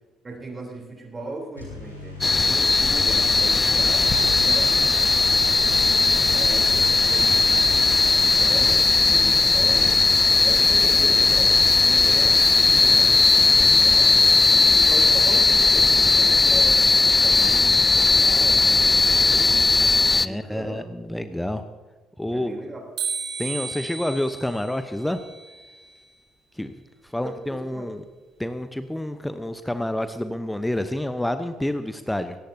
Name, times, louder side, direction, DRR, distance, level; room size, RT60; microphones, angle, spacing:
voice 1, 0.2-2.2 2.4-5.5 5.9-7.8 8.2-9.9 10.4-14.2 14.5-19.8 20.2-20.8 22.3-22.9 27.2-28.0, right 2 dB, 25° right, 0 dB, 3.6 m, -37 dB
sound 1, 1.6-13.8, left 3 dB, 85° left, 2.8 m, -38 dB
sound 2, 2.2-20.3, left 3 dB, 25° left, 0.5 m, -18 dB
voice 2, 20.2-21.6 22.2-22.6 23.4-25.2 26.5-26.7 27.0-28.0 28.4-32.4, left 1 dB, 5° left, 10 dB, 0.9 m, -28 dB
sound 3, 23.0-26.1, right 6 dB, 55° right, 3.0 m, -34 dB
21.0 x 18.0 x 2.8 m, 1.3 s
figure-of-eight pair, 50°, 0 cm